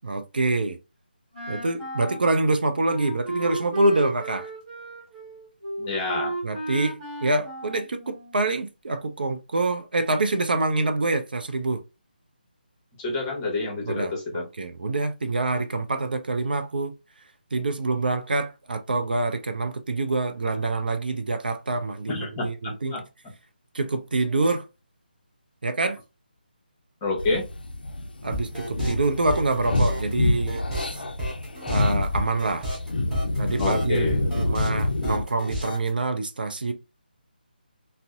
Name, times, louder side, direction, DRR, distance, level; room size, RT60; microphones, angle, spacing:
voice 1, 0.0-0.8 1.5-4.5 6.4-11.8 13.8-16.9 17.5-23.0 23.7-24.7 25.6-26.0 28.2-30.6 31.6-32.7 33.4-34.1 34.4-36.7, right 2 dB, 65° right, 0.4 m, -26 dB
Wind instrument woodwind instrument, 1.3-8.5, right 1 dB, 30° right, 1.3 m, -33 dB
voice 2, 5.8-6.3 13.0-14.5 22.1-23.0 27.0-27.4 33.6-34.2, left 3 dB, 20° left, 0.9 m, -28 dB
sound 1, 27.2-35.2, left 2 dB, 65° left, 0.4 m, -27 dB
sound 2, 28.3-35.9, equal, 5° right, 0.8 m, -32 dB
2.6 x 2.0 x 2.3 m
figure-of-eight pair, 155°, 5 cm